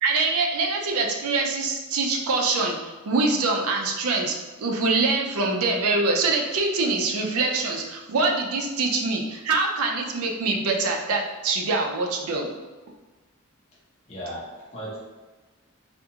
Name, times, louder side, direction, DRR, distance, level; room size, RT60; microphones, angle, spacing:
voice 1, 0.0-12.5, right 3 dB, 85° right, 1 dB, 0.4 m, -24 dB
voice 2, 14.1-15.0, equal, 30° left, -7 dB, 0.7 m, -36 dB
2.5 x 2.3 x 2.8 m, 1.3 s
head